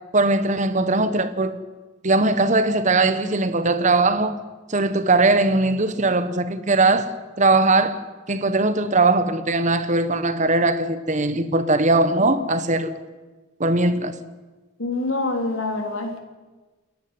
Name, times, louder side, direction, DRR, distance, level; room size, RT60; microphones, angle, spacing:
voice 1, 0.1-1.6 2.0-4.3 4.7-8.0 8.3-12.9 13.6-14.1, right 2 dB, 35° right, 1.2 m, -20 dB
voice 2, 14.8-16.2, left 2 dB, 75° left, 3.0 m, -25 dB
28.5 x 11.0 x 9.6 m
head